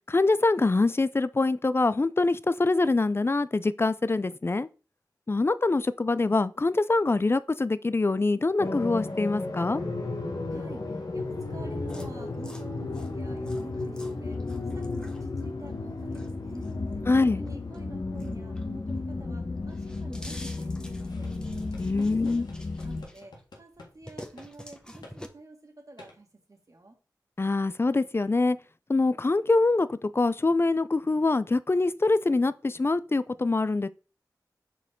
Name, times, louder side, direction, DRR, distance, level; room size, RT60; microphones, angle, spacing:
voice 1, 0.1-4.7 5.3-9.8 17.1-17.4 21.8-22.5 27.4-28.6 28.9-33.9, left 3 dB, 35° left, 0.4 m, -24 dB
sound 1, 8.6-23.0, left 3 dB, 60° left, 1.1 m, -34 dB
voice 2, 10.4-16.7 17.3-21.3 21.9-22.5 22.8-27.0, right 2 dB, 50° right, 1.8 m, -48 dB
sound 2, 11.9-19.0 19.3-23.4 23.7-25.3, left 1 dB, 10° left, 1.0 m, -48 dB
sound 3, 21.0-23.9 24.2-24.5 25.0-25.2 26.0-26.2, left 2 dB, 80° left, 1.7 m, -51 dB
6.0 x 4.5 x 3.7 m
cardioid pair, 40°, 7 cm